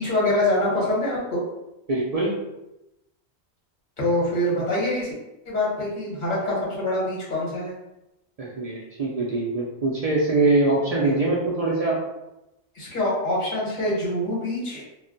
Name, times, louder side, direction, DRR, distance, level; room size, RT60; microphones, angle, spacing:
voice 1, 0.0-1.4 4.0-5.1 5.4-7.7 12.7-14.8, left 1 dB, 45° left, -6 dB, 1.2 m, -25 dB
voice 2, 1.9-2.4 8.4-12.0, right 2 dB, 65° right, -4 dB, 0.3 m, -23 dB
2.3 x 2.1 x 3.7 m, 0.94 s
omnidirectional pair, 1.2 m